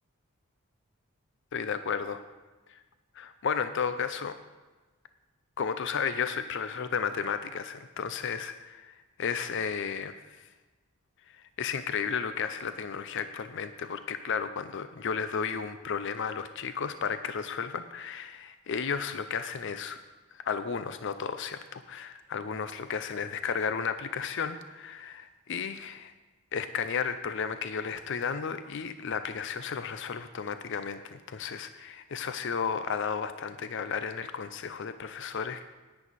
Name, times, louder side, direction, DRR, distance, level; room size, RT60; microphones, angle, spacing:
voice 1, 1.5-2.2 2.7-2.8 3.2-4.4 5.6-10.5 11.3-20.0 20.4-26.1 26.5-35.7, left 6 dB, 60° left, 11 dB, 0.5 m, -33 dB
11.0 x 9.8 x 4.1 m, 1.2 s
head